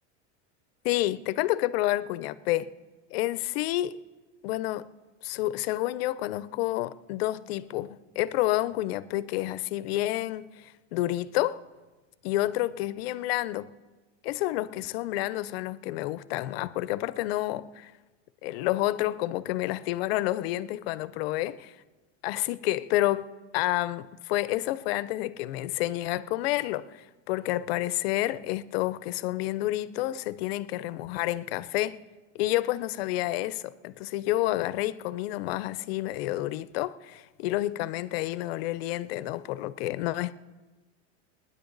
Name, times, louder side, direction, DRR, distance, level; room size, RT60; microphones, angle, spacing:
voice 1, 0.8-2.7 3.1-4.0 4.4-4.9 5.2-11.6 12.2-13.7 14.2-17.9 18.4-21.5 22.2-23.3 23.5-32.0 32.3-40.3, left 16 dB, 55° left, 0.6 m, -29 dB
27.0 x 10.0 x 3.9 m
supercardioid pair, 180°, 36 cm